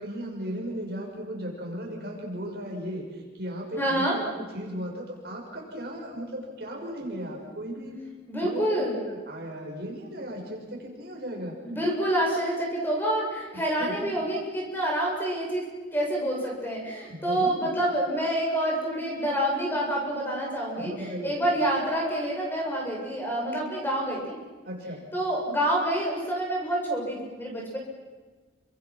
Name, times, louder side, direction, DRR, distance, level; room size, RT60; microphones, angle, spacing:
voice 1, 0.0-8.0 8.4-11.6 13.8-14.1 17.1-17.7 20.8-21.6 24.7-25.1, equal, 55° right, -1 dB, 6.9 m, -36 dB
voice 2, 3.8-4.2 8.3-9.0 11.6-20.9 21.2-24.4 25.1-27.8, right 1 dB, 10° left, -2 dB, 7.2 m, -27 dB
30.0 x 26.5 x 6.3 m, 1.3 s
head